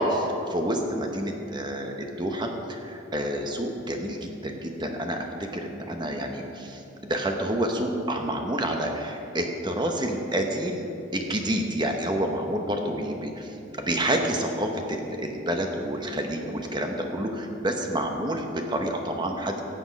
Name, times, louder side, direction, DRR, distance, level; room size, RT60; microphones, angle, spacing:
voice 1, 0.0-5.3 5.5-10.9 11.1-19.6, right 1 dB, 25° right, 3 dB, 0.9 m, -28 dB
15.5 x 7.9 x 5.3 m, 2.8 s
head